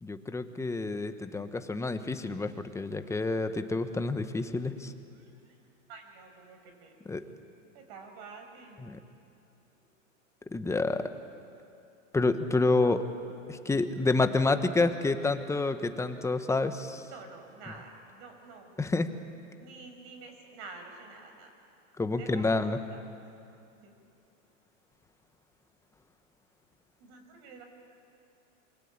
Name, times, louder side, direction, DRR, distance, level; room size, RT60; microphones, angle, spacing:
voice 1, 0.0-4.9 7.1-7.2 8.8-9.0 10.5-11.1 12.1-13.0 13.5-17.0 18.8-19.1 22.0-22.8, left 3 dB, 5° left, 9 dB, 1.2 m, -28 dB
voice 2, 5.1-5.5 5.9-7.0 7.7-9.0 17.0-18.7 19.6-21.5 22.1-23.2 23.8-23.9 27.0-27.6, right 4 dB, 55° right, 5 dB, 6.0 m, -49 dB
27.0 x 24.0 x 8.9 m, 2.6 s
hypercardioid pair, 130°, 39 cm